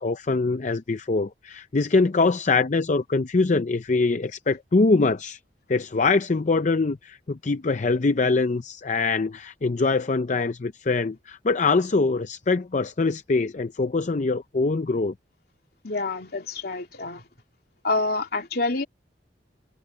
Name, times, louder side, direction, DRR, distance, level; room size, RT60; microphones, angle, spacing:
voice 1, 0.0-5.4 5.7-15.1, left 3 dB, 45° left, 0.5 m, -23 dB
voice 2, 15.8-17.3 17.8-18.8, left 3 dB, 60° left, 3.2 m, -27 dB
head